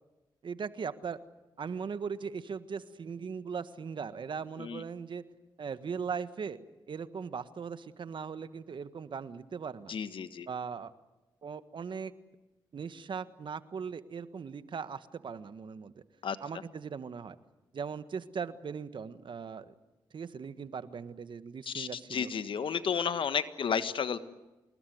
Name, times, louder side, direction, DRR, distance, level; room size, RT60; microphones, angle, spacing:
voice 1, 0.4-1.2 1.6-5.2 5.6-6.6 6.9-9.9 10.5-10.9 11.4-12.1 12.7-15.9 16.4-17.4 17.7-19.7 20.1-22.3, right 6 dB, 60° right, 12 dB, 1.5 m, -39 dB
voice 2, 9.9-10.5 16.2-16.4 21.6-24.2, left 7 dB, 65° left, 12 dB, 1.5 m, -32 dB
27.0 x 20.5 x 9.4 m, 1.1 s
supercardioid pair, 50°, 9 cm